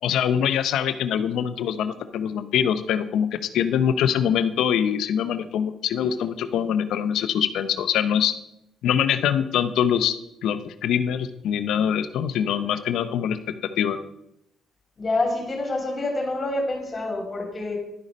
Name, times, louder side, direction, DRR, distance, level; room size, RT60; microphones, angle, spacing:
voice 1, 0.0-8.3 8.8-10.1 10.4-13.4 13.8-14.0, left 9 dB, 80° left, 11 dB, 0.6 m, -23 dB
voice 2, 15.0-17.8, left 2 dB, 30° left, 2 dB, 3.4 m, -27 dB
11.0 x 4.9 x 5.3 m, 0.82 s
cardioid pair, 90°, 0 cm